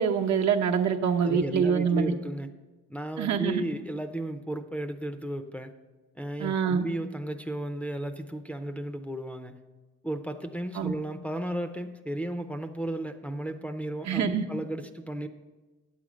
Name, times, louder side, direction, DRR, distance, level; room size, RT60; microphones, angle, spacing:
voice 1, 0.0-2.1 3.2-3.6 6.4-6.9 10.8-10.9 14.1-14.4, right 7 dB, 65° right, 3 dB, 0.9 m, -25 dB
voice 2, 1.2-2.5 2.9-5.7 6.1-9.6 10.0-15.3, right 1 dB, 5° left, 5 dB, 0.5 m, -34 dB
8.9 x 7.5 x 5.1 m, 1.2 s
cardioid pair, 90°, 30 cm